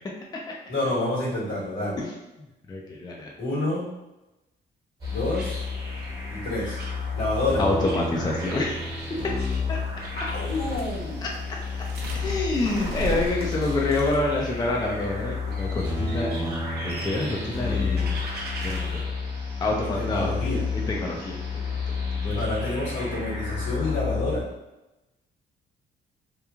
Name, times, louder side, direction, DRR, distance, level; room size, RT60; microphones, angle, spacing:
voice 1, 0.7-2.0 3.4-3.9 5.1-5.6 6.3-6.8 7.1-7.6 10.1-11.2 19.8-20.7 22.2-24.5, left 1 dB, 70° left, -5 dB, 1.3 m, -28 dB
voice 2, 2.7-3.3 7.6-8.8 9.7-9.8 11.2-11.3 12.2-18.2 18.6-19.0 19.6-20.3 20.7-21.6, left 2 dB, 20° left, -1 dB, 0.4 m, -27 dB
sound 1, 5.0-24.4, left 4 dB, 20° right, 0.9 m, -30 dB
sound 2, 5.0-19.0, right 1 dB, 55° right, 0.7 m, -39 dB
3.0 x 2.3 x 2.3 m, 0.97 s
cardioid pair, 90°, 20 cm